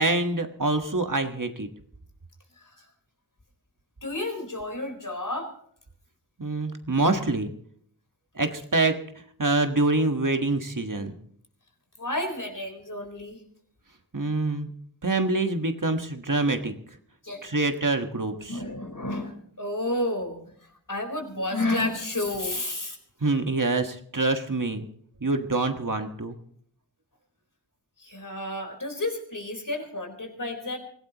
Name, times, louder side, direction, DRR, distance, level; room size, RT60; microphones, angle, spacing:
voice 1, 0.0-1.7 6.4-7.5 8.3-9.0 9.4-11.1 14.1-14.7 15.0-16.7 17.4-18.6 23.2-24.8 25.2-26.4, right 2 dB, 55° right, 5 dB, 1.5 m, -25 dB
voice 2, 2.6-2.9 4.0-5.5 12.0-13.4 17.2-17.7 17.9-18.1 18.5-23.0 28.0-30.8, left 1 dB, 55° left, 4 dB, 4.3 m, -31 dB
24.5 x 17.0 x 3.0 m, 0.62 s
wide cardioid pair, 50°, 39 cm